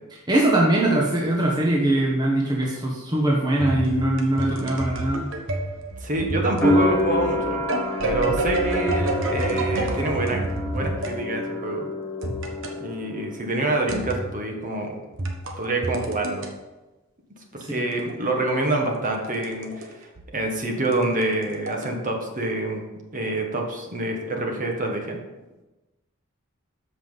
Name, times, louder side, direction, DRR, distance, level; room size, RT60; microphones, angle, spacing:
voice 1, 0.3-5.3 17.6-17.9, right 1 dB, 20° right, -3 dB, 1.2 m, -22 dB
sound 1, 3.6-11.2 12.2-12.8 13.9-14.3 15.1-16.5 17.9-19.9 20.2-20.3 20.8-21.9, right 1 dB, 65° right, 1.3 m, -29 dB
voice 2, 6.0-7.7 8.0-10.4 10.7-11.9 12.8-14.9 15.6-16.4 17.7-20.1 20.3-22.8 23.1-25.2, right 2 dB, 40° right, 1 dB, 1.6 m, -26 dB
sound 2, 6.6-13.4 13.7-14.6, left 1 dB, 5° left, 1.1 m, -28 dB
13.0 x 5.5 x 4.1 m, 1.1 s
head